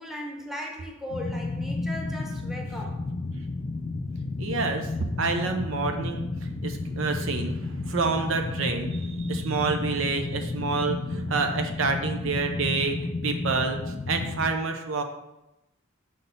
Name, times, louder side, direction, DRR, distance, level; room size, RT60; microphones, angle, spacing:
voice 1, 0.0-3.0, equal, ahead, 0 dB, 0.9 m, -37 dB
sound 1, 1.1-14.5, left 3 dB, 35° left, 0.3 m, -32 dB
voice 2, 4.4-13.0 13.2-13.8 14.1-15.0, right 4 dB, 75° right, 5 dB, 0.6 m, -28 dB
5.6 x 4.0 x 5.2 m, 0.93 s
head